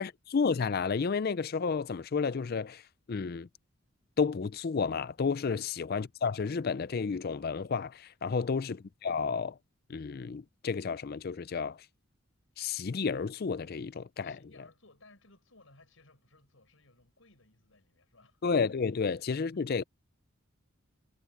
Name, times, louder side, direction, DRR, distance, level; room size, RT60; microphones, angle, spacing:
voice 1, 0.0-2.8 3.1-3.5 4.2-9.6 9.9-11.8 12.6-14.4 18.4-19.8, left 5 dB, 45° left, 0.4 m, -31 dB
voice 2, 14.2-18.4 19.3-19.4, left 2 dB, 70° left, 6.0 m, -60 dB
head